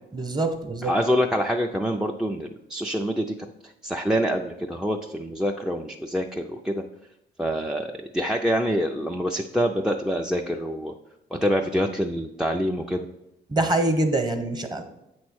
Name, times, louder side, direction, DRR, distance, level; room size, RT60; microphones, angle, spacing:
voice 1, 0.1-0.9 13.5-14.8, right 2 dB, 20° right, 6 dB, 1.0 m, -24 dB
voice 2, 0.8-3.4 3.8-6.8 7.4-10.9 11.3-13.0, equal, 5° right, 2 dB, 0.4 m, -26 dB
8.0 x 3.1 x 6.2 m, 0.90 s
cardioid pair, 90°, 20 cm